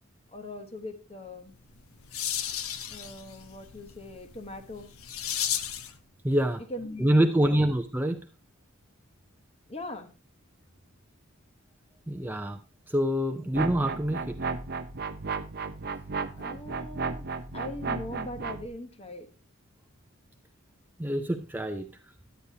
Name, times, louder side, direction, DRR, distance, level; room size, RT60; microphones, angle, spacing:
voice 1, 0.3-1.5 2.9-4.9 6.7-7.6 9.7-10.1 16.4-17.3 17.5-19.3, left 1 dB, 30° left, 7 dB, 0.9 m, -40 dB
sound 1, 1.6-6.0, left 9 dB, 85° left, 0.8 m, -35 dB
voice 2, 6.2-6.6 7.0-8.2 12.1-12.6 12.9-14.4 21.0-22.1, right 1 dB, 10° right, 5 dB, 0.5 m, -26 dB
sound 2, 13.5-18.7, right 4 dB, 45° right, 0.7 m, -34 dB
10.0 x 9.4 x 2.8 m, 0.33 s
head